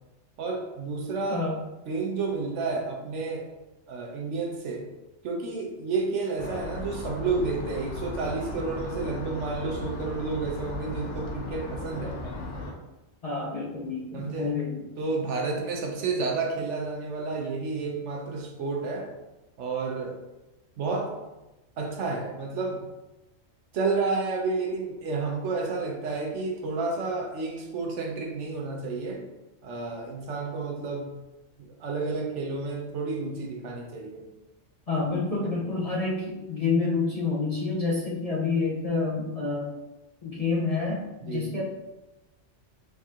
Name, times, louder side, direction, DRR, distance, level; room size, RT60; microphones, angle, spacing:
voice 1, 0.4-1.4 1.9-3.5 3.9-4.9 5.2-12.2 14.1-14.5 15.0-19.1 19.6-20.2 20.8-21.1 21.8-22.8 23.7-29.3 29.6-31.2 31.6-34.3 41.2-41.6, right 3 dB, 80° right, 1 dB, 1.1 m, -30 dB
sound 1, 6.4-12.7, left 2 dB, 80° left, 1.0 m, -36 dB
voice 2, 13.2-14.7 34.9-39.7 40.2-41.6, left 4 dB, 45° left, -4 dB, 0.5 m, -28 dB
4.2 x 3.6 x 2.4 m, 1.0 s
omnidirectional pair, 1.2 m